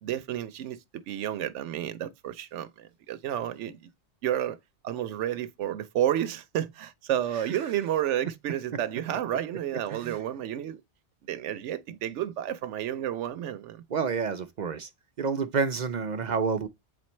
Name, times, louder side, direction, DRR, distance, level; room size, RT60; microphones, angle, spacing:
voice 1, 0.0-3.9 4.2-4.6 4.8-10.8 11.3-13.8, right 11 dB, 85° right, 0.9 m, -31 dB
voice 2, 13.9-14.9 15.2-16.7, right 5 dB, 55° right, 0.5 m, -29 dB
8.1 x 4.2 x 3.1 m
omnidirectional pair, 1.2 m